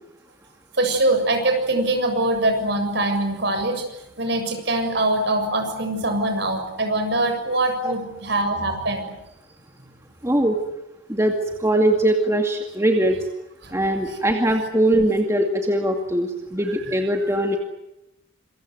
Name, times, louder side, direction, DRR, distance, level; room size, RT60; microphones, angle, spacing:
voice 1, 0.8-3.8 4.2-9.1 13.6-13.8 17.2-17.3, right 2 dB, 55° right, 5 dB, 7.1 m, -23 dB
voice 2, 10.2-10.6 11.1-11.3 11.6-13.1 13.7-17.6, right 1 dB, 15° right, 3 dB, 2.3 m, -21 dB
27.0 x 24.5 x 8.0 m, 0.91 s
head